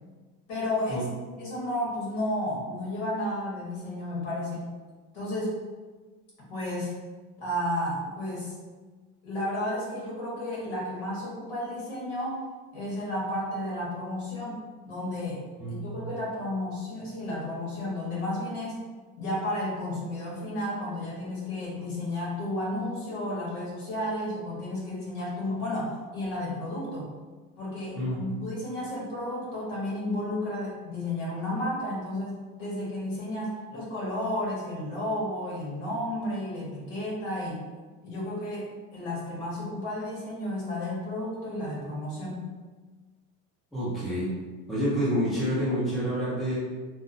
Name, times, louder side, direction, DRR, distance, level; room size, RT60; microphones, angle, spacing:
voice 1, 0.5-1.1 1.4-4.7 5.1-5.6 6.5-6.9 7.4-8.5 9.2-12.5 12.7-14.6 14.8-15.4 15.7-18.8 19.2-27.1 27.6-37.6 38.0-42.5, left 1 dB, 85° left, -5 dB, 1.2 m, -32 dB
voice 2, 15.6-16.1 28.0-28.2 43.7-44.3 44.7-46.6, equal, ahead, -9 dB, 0.3 m, -28 dB
2.7 x 2.0 x 2.5 m, 1.4 s
cardioid pair, 175°, 32 cm